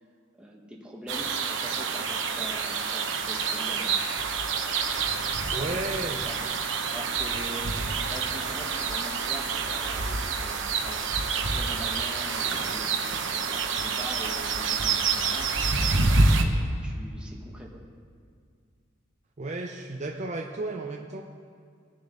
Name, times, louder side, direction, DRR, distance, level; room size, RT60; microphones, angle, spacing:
voice 1, 0.3-4.0 5.6-5.9 6.2-6.4 6.9-7.7 8.1-11.0 11.3-12.9 13.3-15.5 16.4-17.8, equal, 5° right, -2 dB, 1.3 m, -43 dB
sound 1, 1.1-16.4, right 4 dB, 65° right, 0.9 m, -27 dB
voice 2, 5.5-6.2 19.4-21.2, right 2 dB, 35° right, 2 dB, 0.6 m, -33 dB
20.0 x 6.9 x 3.9 m, 2.2 s
head